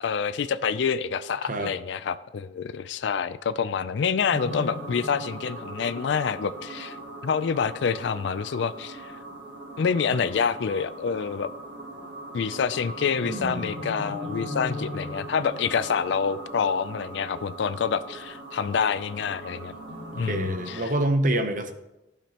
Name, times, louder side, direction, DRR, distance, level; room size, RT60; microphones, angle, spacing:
voice 1, 0.0-7.0 7.2-9.1 9.8-11.5 12.3-19.7 20.2-20.8, left 6 dB, 65° left, 14 dB, 0.4 m, -27 dB
sound 1, 4.3-20.8, right 1 dB, 65° right, 1.7 m, -39 dB
voice 2, 13.2-13.7 20.1-21.7, right 1 dB, 40° right, 7 dB, 0.7 m, -27 dB
15.0 x 5.1 x 2.9 m, 0.96 s
head